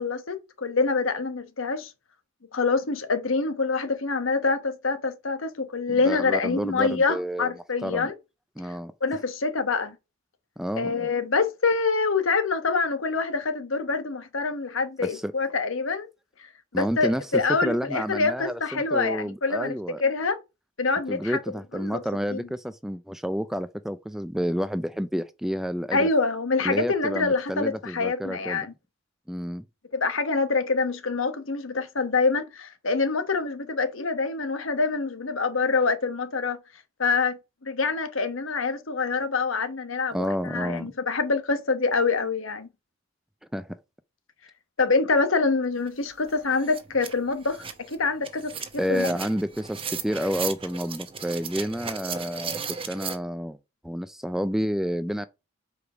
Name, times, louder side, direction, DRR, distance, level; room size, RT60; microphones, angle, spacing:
voice 1, 0.0-1.9 2.5-8.1 9.0-9.9 10.8-16.1 16.7-20.4 20.8-21.4 21.7-22.0 22.3-22.4 25.9-28.7 29.9-36.6 37.0-42.7 44.8-49.1, left 4 dB, 80° left, 1.1 m, -26 dB
voice 2, 5.9-7.5 7.8-8.1 8.6-8.9 10.6-11.1 15.0-15.3 16.7-20.0 21.1-26.1 26.6-28.7 29.3-29.6 40.1-40.9 43.5-43.8 48.8-52.6 52.9-53.6 53.8-55.3, equal, ahead, 0.3 m, -29 dB
sound 1, 45.9-46.0 46.3-53.2, right 6 dB, 25° right, 0.8 m, -36 dB
4.9 x 4.9 x 6.0 m
head